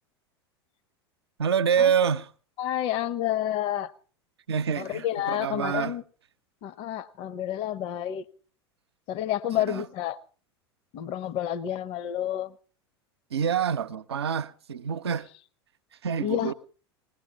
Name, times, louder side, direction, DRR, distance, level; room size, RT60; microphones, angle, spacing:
voice 1, 1.4-2.3 4.5-6.0 9.7-9.8 13.3-15.3 16.0-16.5, right 7 dB, 70° right, 0.7 m, -26 dB
voice 2, 2.6-3.9 4.8-6.0 6.6-8.2 9.1-10.2 10.9-12.5 16.2-16.5, left 11 dB, 40° left, 0.8 m, -29 dB
20.0 x 19.0 x 3.6 m
figure-of-eight pair, 85°, 14 cm